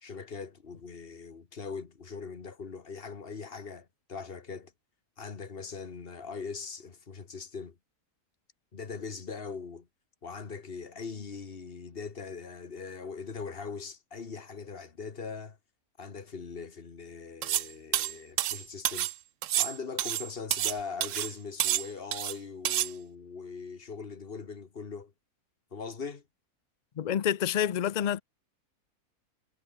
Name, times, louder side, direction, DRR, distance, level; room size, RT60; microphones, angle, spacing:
voice 1, 0.0-4.7 5.2-7.8 8.7-9.9 10.2-15.6 16.0-19.1 19.6-25.1 25.7-26.2, left 5 dB, 40° left, 1.7 m, -41 dB
sound 1, 17.4-17.7 17.9-19.1 19.4-20.8 21.0-21.3 21.6-22.3 22.6-22.9, right 13 dB, 65° right, 0.9 m, -29 dB
voice 2, 27.0-28.2, left 9 dB, 90° left, 0.3 m, -28 dB
omnidirectional pair, 1.6 m